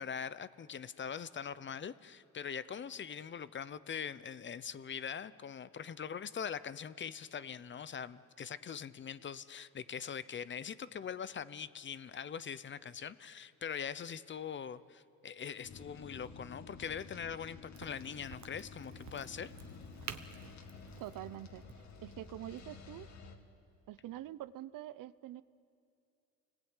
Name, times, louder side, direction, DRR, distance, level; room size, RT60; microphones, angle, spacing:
voice 1, 0.0-19.5, left 7 dB, 35° left, 16 dB, 0.7 m, -42 dB
sound 1, 15.6-23.4, left 4 dB, 55° left, 2.3 m, -51 dB
Crack, 17.7-23.2, right 8 dB, 60° right, 1.3 m, -52 dB
voice 2, 21.0-21.6 22.0-23.1 23.9-25.4, right 13 dB, 80° right, 16 dB, 0.8 m, -45 dB
29.0 x 19.5 x 9.0 m, 2.5 s
cardioid pair, 125°, 33 cm